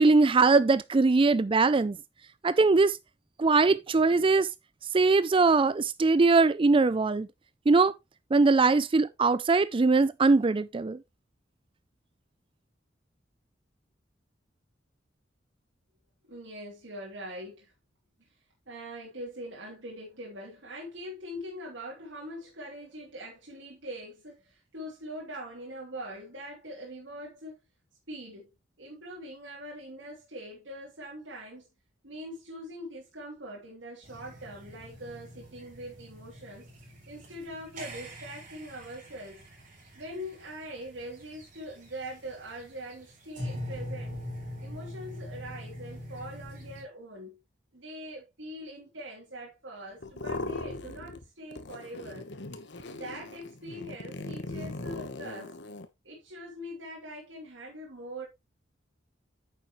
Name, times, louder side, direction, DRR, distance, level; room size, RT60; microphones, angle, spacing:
voice 1, 0.0-2.0 2.4-3.0 3.4-4.5 4.9-7.3 7.7-7.9 8.3-11.0, right 3 dB, 30° right, 0.4 m, -21 dB
voice 2, 16.3-17.7 18.7-27.6 28.1-28.5 28.8-31.7 32.0-36.7 37.1-39.4 39.9-44.2 44.6-47.4 47.7-52.3 52.9-55.6 56.0-58.3, equal, 85° right, 3.1 m, -42 dB
sound 1, 34.0-46.8, equal, 45° right, 4.9 m, -43 dB
sound 2, 50.0-51.2 51.5-55.9, left 2 dB, 65° left, 1.1 m, -39 dB
9.2 x 7.2 x 3.1 m
head